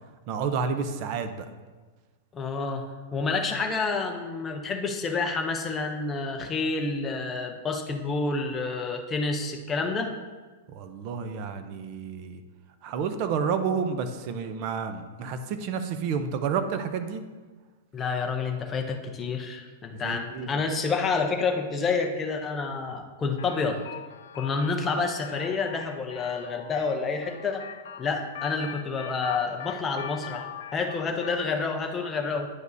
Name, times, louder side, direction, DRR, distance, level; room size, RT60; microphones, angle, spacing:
voice 1, 0.3-1.5 10.7-12.4 12.8-17.2 20.0-20.5, right 6 dB, 35° right, 9 dB, 0.5 m, -30 dB
voice 2, 2.3-2.9 3.1-10.1 17.9-23.8 24.3-27.7 28.0-32.5, left 4 dB, 15° left, 3 dB, 0.6 m, -29 dB
sound 1, 23.4-31.5, left 9 dB, 80° left, 0.4 m, -42 dB
9.5 x 5.2 x 2.6 m, 1.4 s
supercardioid pair, 170°, 0 cm